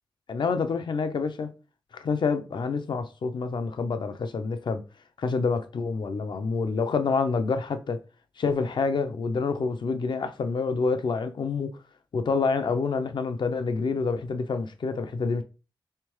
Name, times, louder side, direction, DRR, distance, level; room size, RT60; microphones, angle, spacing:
voice 1, 0.3-1.5 1.9-4.8 5.2-8.0 8.4-11.7 12.1-15.4, left 4 dB, 70° left, 0.5 m, -27 dB
3.6 x 3.3 x 3.1 m
wide cardioid pair, 115°, 8 cm